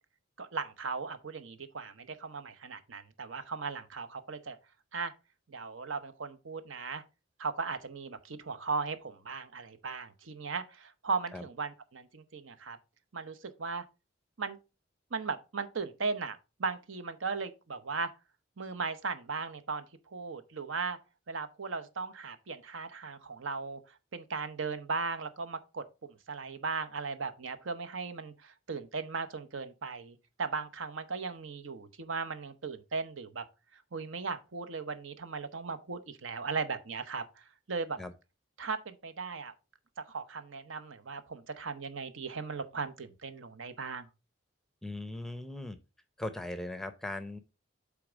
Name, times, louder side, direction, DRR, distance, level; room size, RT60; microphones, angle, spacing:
voice 1, 0.4-4.6 4.9-5.1 5.5-7.0 7.4-12.8 13.1-13.8 14.4-14.6 15.1-18.1 18.6-19.8 20.1-21.0 21.3-33.4 33.7-38.0 38.6-39.5 40.0-44.1, right 4 dB, 70° right, 0.8 m, -37 dB
voice 2, 44.8-45.8 46.2-47.4, left 1 dB, ahead, 0.6 m, -39 dB
8.3 x 3.6 x 5.0 m
head